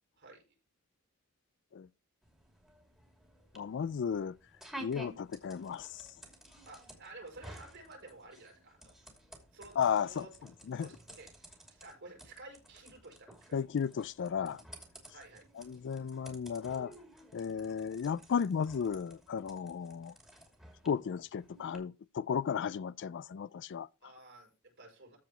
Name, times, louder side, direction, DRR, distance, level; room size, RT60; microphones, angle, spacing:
sound 1, 2.2-21.8, right 1 dB, ahead, 2.7 m, -54 dB
voice 1, 3.5-4.4 4.8-6.0 9.8-10.3 10.7-10.9 13.5-14.6 15.6-16.9 17.3-20.1 20.8-23.9, left 7 dB, 60° left, 0.4 m, -34 dB
voice 2, 6.7-8.9 9.5-10.3 10.8-13.5 15.1-15.5 24.0-25.2, right 2 dB, 55° right, 6.6 m, -52 dB
14.5 x 4.9 x 4.4 m
head